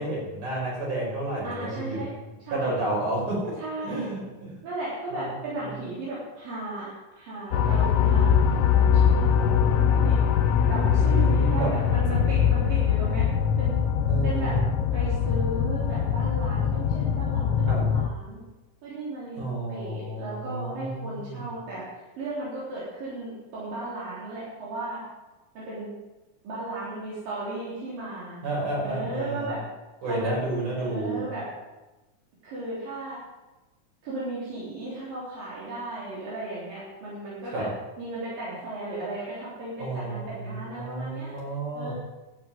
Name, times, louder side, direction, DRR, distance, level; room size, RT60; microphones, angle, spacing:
voice 1, 0.0-2.0 2.5-4.5 5.1-5.3 8.0-9.0 11.0-11.7 14.1-14.7 17.7-17.9 19.4-21.5 28.4-29.5 30.0-31.3 37.5-37.7 39.8-41.9, right 2 dB, 60° right, -4 dB, 6.9 m, -31 dB
voice 2, 1.4-2.1 2.5-2.8 3.6-4.1 4.6-8.3 8.8-10.2 10.7-13.3 13.6-13.8 14.2-14.5 14.9-18.4 18.8-21.8 22.2-25.0 25.6-25.9 26.4-28.4 28.8-29.6 30.0-30.5 30.8-31.5 32.4-33.2 34.0-37.7 38.0-41.3 41.7-41.9, right 2 dB, 85° right, -8 dB, 5.4 m, -35 dB
sound 1, 7.5-18.1, left 7 dB, 90° left, 1.3 m, -22 dB
12.0 x 8.4 x 9.3 m, 1.1 s
omnidirectional pair, 3.8 m